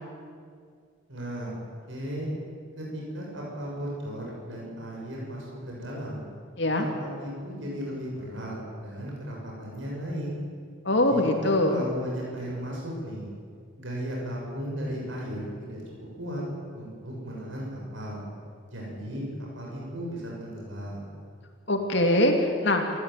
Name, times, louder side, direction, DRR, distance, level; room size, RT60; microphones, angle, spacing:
voice 1, 1.1-1.5 1.9-2.3 2.8-6.2 6.8-10.3 11.1-13.3 13.8-15.8 16.2-16.4 16.7-18.2 18.6-21.1, equal, 65° right, -3 dB, 7.3 m, -35 dB
voice 2, 10.8-11.8 21.7-22.8, left 1 dB, 55° left, 3 dB, 2.8 m, -23 dB
27.5 x 14.5 x 9.4 m, 2.1 s
head